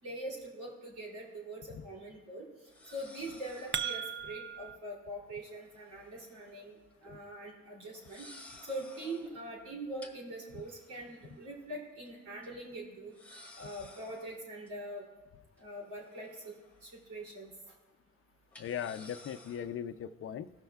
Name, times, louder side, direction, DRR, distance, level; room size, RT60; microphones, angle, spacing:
voice 1, 0.0-2.5 2.9-6.8 7.0-8.3 8.6-13.1 13.6-15.0 15.6-16.5 16.8-17.5, right 1 dB, 80° right, -2 dB, 3.0 m, -43 dB
sound 1, 1.0-1.1 2.6-4.1 5.5-6.6 6.9-7.2 7.9-9.4 10.0-11.7 12.1-12.2 12.4-12.5 13.1-14.7 15.6-17.0 17.3-17.5 18.5-19.8, left 2 dB, 5° left, 1.4 m, -55 dB
sound 2, 3.3-4.8, right 8 dB, 40° right, 0.6 m, -37 dB
voice 2, 18.6-20.5, left 9 dB, 45° left, 10 dB, 0.5 m, -39 dB
17.0 x 6.4 x 2.3 m, 1.3 s
cardioid pair, 90°, 30 cm